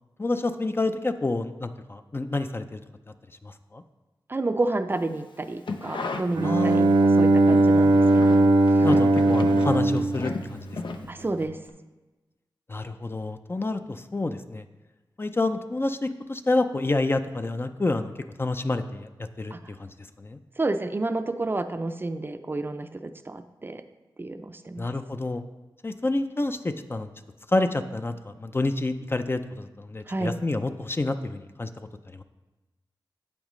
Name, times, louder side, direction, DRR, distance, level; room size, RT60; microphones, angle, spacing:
voice 1, 0.2-2.8 3.4-3.8 6.4-6.9 8.8-11.1 12.7-14.6 15.2-18.1 18.4-19.1 19.4-19.5 19.8-19.9 20.2-20.4 24.8-25.4 25.8-27.1 27.5-31.7 32.1-32.2, left 2 dB, 30° left, 9 dB, 0.4 m, -28 dB
voice 2, 4.3-8.9 11.1-11.6 19.5-19.6 20.6-23.8 24.2-24.9 30.1-30.4, right 2 dB, 25° right, 9 dB, 0.4 m, -30 dB
sound 1, 5.4-7.0 7.3-11.4 11.7-11.8, left 3 dB, 80° left, 0.6 m, -35 dB
Bowed string instrument, 6.3-11.2, right 2 dB, 80° right, 0.6 m, -20 dB
8.6 x 8.1 x 3.1 m, 1.1 s
wide cardioid pair, 90°, 8 cm